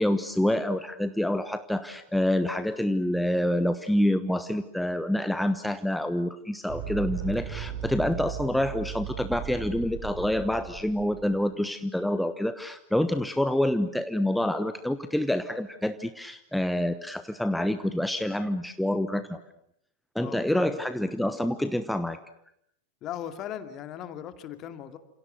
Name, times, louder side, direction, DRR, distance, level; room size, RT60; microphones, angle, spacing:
voice 1, 0.0-19.4 20.1-22.2, left 1 dB, 5° left, 10 dB, 1.1 m, -27 dB
sound 1, 6.7-11.4, right 10 dB, 35° right, 5.3 m, -37 dB
voice 2, 20.2-20.8 23.0-25.0, left 10 dB, 35° left, 9 dB, 2.5 m, -38 dB
29.5 x 28.0 x 6.7 m, 0.75 s
figure-of-eight pair, 90°, 0 cm